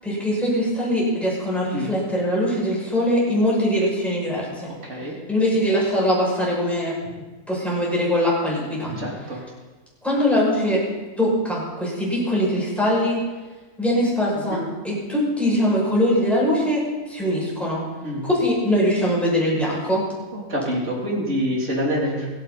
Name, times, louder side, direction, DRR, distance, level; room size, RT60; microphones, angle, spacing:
voice 1, 0.0-4.7 5.3-6.9 7.5-8.9 10.0-10.8 11.2-13.2 13.8-17.8 18.2-20.0, equal, ahead, -6 dB, 6.3 m, -22 dB
voice 2, 4.7-5.1 8.8-9.4 14.3-14.6 18.0-18.2 20.3-22.3, equal, 60° right, -3 dB, 3.6 m, -26 dB
24.5 x 10.0 x 4.1 m, 1.2 s
omnidirectional pair, 1.4 m